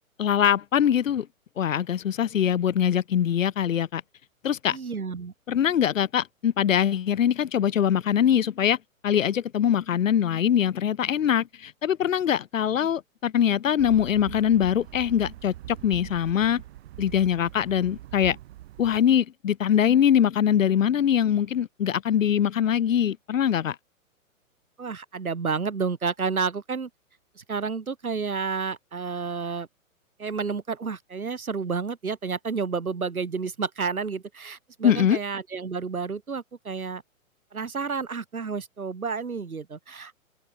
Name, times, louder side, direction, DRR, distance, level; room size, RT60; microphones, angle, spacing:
voice 1, 0.2-1.3 1.6-4.0 4.4-4.8 5.5-8.8 9.0-15.5 15.8-16.6 17.0-18.4 18.8-23.8 34.8-35.2, left 9 dB, 65° left, 1.4 m, -23 dB
voice 2, 4.7-5.3 24.8-26.9 27.4-29.7 30.2-37.0 37.5-40.1, right 5 dB, 90° right, 1.9 m, -30 dB
sound 1, 13.8-19.0, right 14 dB, 45° right, 4.2 m, -42 dB
open air
hypercardioid pair, 130°, 42 cm